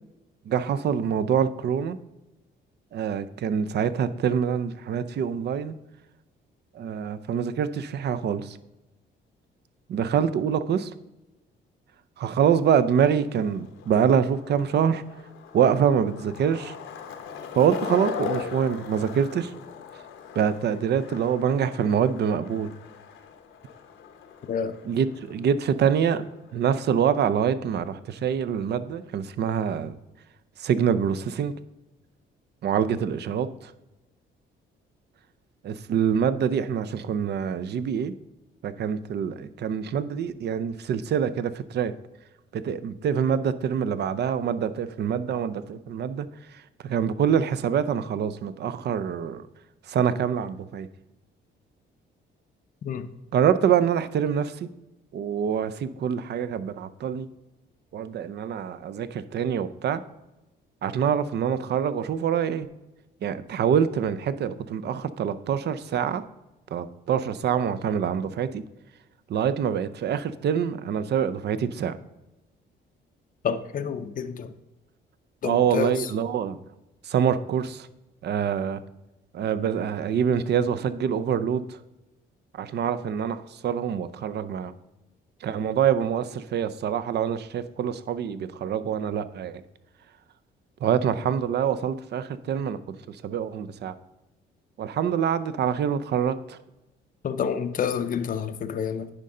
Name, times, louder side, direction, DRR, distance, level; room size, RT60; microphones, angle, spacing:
voice 1, 0.5-2.0 2.9-5.7 6.8-8.6 9.9-10.9 12.2-15.0 15.5-16.7 17.5-19.5 20.4-22.7 24.8-26.2 26.5-30.0 30.6-31.5 32.6-33.7 35.6-38.1 38.6-41.9 42.5-46.3 46.8-49.4 49.9-50.9 53.3-54.7 55.1-57.3 57.9-60.0 60.8-62.7 63.2-66.2 66.7-68.6 69.3-71.9 75.4-76.6 77.1-77.9 78.2-78.8 79.3-81.6 82.6-84.7 85.4-89.5 90.8-93.0 93.2-93.9 94.8-96.6, right 8 dB, 60° right, 0.5 m, -25 dB
Skateboard, 12.2-27.4, left 7 dB, 85° left, 1.0 m, -40 dB
voice 2, 73.4-74.5 75.4-76.0 97.2-99.1, left 7 dB, 45° left, 0.6 m, -28 dB
9.7 x 5.4 x 3.8 m
cardioid pair, 90°, 20 cm